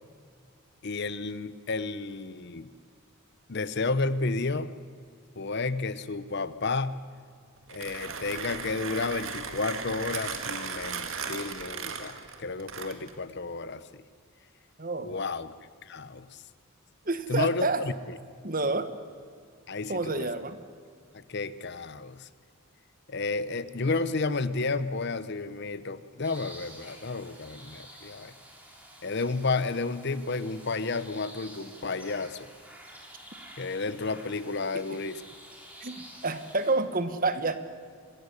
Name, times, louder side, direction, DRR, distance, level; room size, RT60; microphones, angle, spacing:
voice 1, 0.8-2.7 3.5-4.7 5.4-7.0 7.7-12.1 12.4-14.0 15.0-15.5 15.8-16.4 17.3-17.9 19.7-20.3 21.1-22.3 23.1-28.3 29.0-32.5 33.6-35.2, left 3 dB, 50° left, 14 dB, 0.8 m, -31 dB
Mechanisms, 7.6-13.2, right 5 dB, 65° right, 1.9 m, -36 dB
voice 2, 14.8-15.1 17.0-17.8 18.4-18.9 19.9-20.6 35.8-37.5, right 3 dB, 40° right, 11 dB, 1.3 m, -28 dB
sound 1, 26.2-36.7, right 1 dB, 5° right, 3.7 m, -50 dB
25.5 x 13.5 x 9.9 m, 2.1 s
head